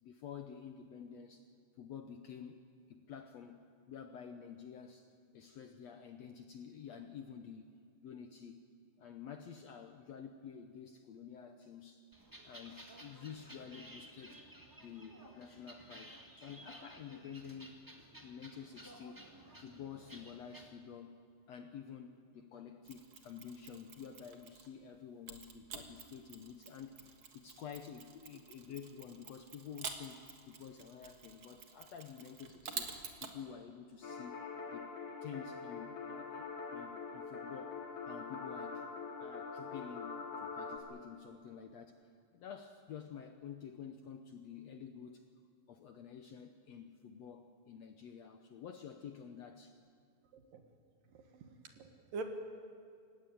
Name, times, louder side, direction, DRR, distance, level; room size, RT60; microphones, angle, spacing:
voice 1, 0.0-1.5 1.8-2.6 2.9-7.7 8.0-8.6 9.0-12.1 12.4-14.4 14.8-17.8 18.1-19.2 19.6-21.2 21.5-32.9 33.2-34.4 34.7-34.9 35.2-38.9 39.2-45.3 45.7-49.8, left 7 dB, 75° left, 6 dB, 1.5 m, -50 dB
sound 1, 12.1-20.7, right 1 dB, 15° right, 0.8 m, -55 dB
Mechanisms, 22.8-24.8 25.3-33.4, right 5 dB, 45° right, 2.0 m, -49 dB
sound 2, 34.0-40.8, left 5 dB, 45° left, 3.3 m, -44 dB
voice 2, 51.1-51.5 51.8-52.2, right 3 dB, 70° right, 5 dB, 3.2 m, -45 dB
28.0 x 16.0 x 9.3 m, 2.3 s
omnidirectional pair, 4.3 m